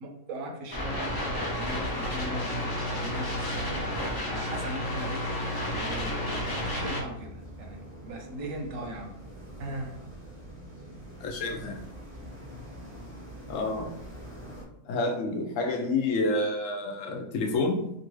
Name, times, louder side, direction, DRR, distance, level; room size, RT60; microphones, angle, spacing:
voice 1, 0.0-3.9 4.3-5.2 5.7-9.1 9.6-10.0, right 1 dB, 75° right, 3 dB, 1.0 m, -39 dB
sound 1, 0.7-7.0, left 1 dB, 40° left, 0.3 m, -31 dB
Gong, 2.2-15.9, right 1 dB, 25° right, 0.6 m, -51 dB
sound 2, 2.7-14.6, right 1 dB, 10° left, 0.8 m, -46 dB
voice 2, 11.2-11.8 13.5-13.9 14.8-17.9, left 2 dB, 70° left, 2 dB, 0.9 m, -29 dB
2.9 x 2.4 x 3.0 m, 0.80 s
omnidirectional pair, 1.4 m